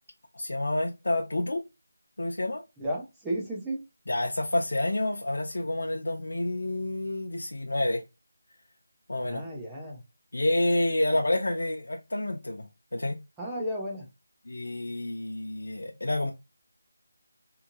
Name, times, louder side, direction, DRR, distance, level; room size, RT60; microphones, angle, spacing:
voice 1, 0.3-1.6 2.2-2.6 4.1-8.0 9.1-9.4 10.3-12.6 12.9-13.2 14.5-16.3, left 1 dB, 75° left, 0.5 m, -28 dB
voice 2, 2.8-3.8 9.2-10.0 11.1-11.2 13.4-14.1, equal, 5° right, 0.4 m, -33 dB
2.9 x 2.6 x 2.4 m
figure-of-eight pair, 180°, 0 cm